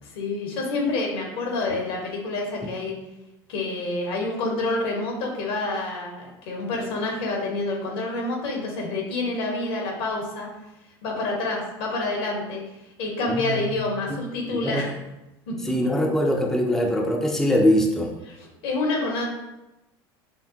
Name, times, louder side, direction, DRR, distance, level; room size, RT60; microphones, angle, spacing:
voice 1, 0.0-3.0 3.5-10.5 11.0-12.6 13.0-14.9 15.5-15.6 18.3-19.2, left 2 dB, 70° left, 0 dB, 1.1 m, -28 dB
voice 2, 13.3-13.8 14.6-14.9 15.7-18.1, equal, 5° left, 0 dB, 0.5 m, -22 dB
5.7 x 2.0 x 2.8 m, 0.94 s
hypercardioid pair, 80°, 13 cm